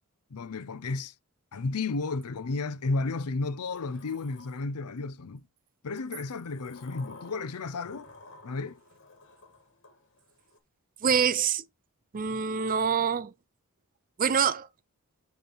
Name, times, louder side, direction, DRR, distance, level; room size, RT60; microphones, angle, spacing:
voice 1, 0.3-1.1 1.5-5.4 5.8-8.1 8.4-8.8, left 3 dB, 90° left, 0.6 m, -33 dB
Sliding door, 3.7-5.2 6.0-10.6, left 3 dB, 55° left, 1.6 m, -53 dB
voice 2, 11.0-11.6 12.1-13.3 14.2-14.7, right 7 dB, 40° right, 0.5 m, -25 dB
7.7 x 3.2 x 4.7 m
head